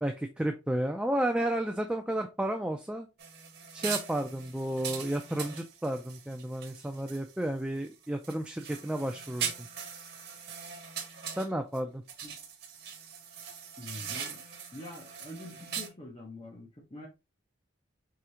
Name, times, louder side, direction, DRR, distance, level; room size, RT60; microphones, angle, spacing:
voice 1, 0.0-3.1 3.7-9.7 11.4-12.0, right 1 dB, 5° right, 0.4 m, -32 dB
sound 1, 3.2-7.4 7.8-11.8 12.1-15.9, right 7 dB, 55° right, 1.3 m, -41 dB
voice 2, 13.8-14.4 14.7-17.1, left 1 dB, 30° left, 0.9 m, -45 dB
4.9 x 3.4 x 2.8 m
head